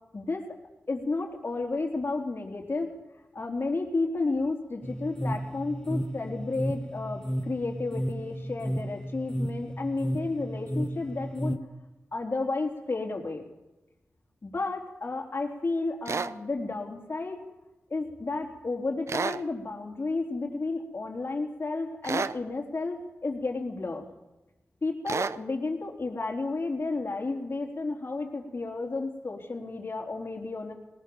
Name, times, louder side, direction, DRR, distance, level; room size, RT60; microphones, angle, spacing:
voice 1, 0.1-0.6 0.9-2.9 3.3-11.6 12.1-13.4 14.4-17.4 17.9-24.1 24.8-30.7, left 3 dB, 50° left, -1 dB, 4.0 m, -32 dB
sound 1, 4.8-11.6, equal, 15° left, 1.7 m, -33 dB
sound 2, 16.0-16.3 19.1-19.4 22.0-22.4 25.1-25.4, right 5 dB, 70° right, 0.8 m, -30 dB
20.0 x 19.0 x 7.2 m, 1.0 s
cardioid pair, 45°, 5 cm